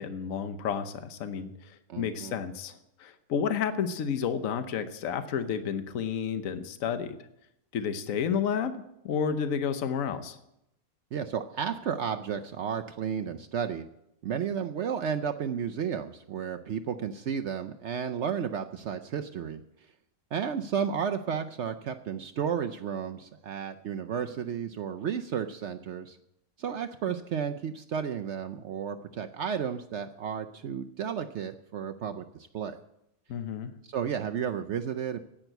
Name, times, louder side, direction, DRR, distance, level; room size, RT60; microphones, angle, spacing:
voice 1, 0.0-7.2 7.7-10.4 33.3-33.7, left 7 dB, 65° left, 10 dB, 1.2 m, -31 dB
voice 2, 1.9-2.4 11.1-13.8 14.2-19.6 20.3-26.2 26.6-32.8 33.8-35.2, right 7 dB, 60° right, 7 dB, 0.8 m, -33 dB
10.5 x 8.9 x 7.9 m, 0.82 s
omnidirectional pair, 1.5 m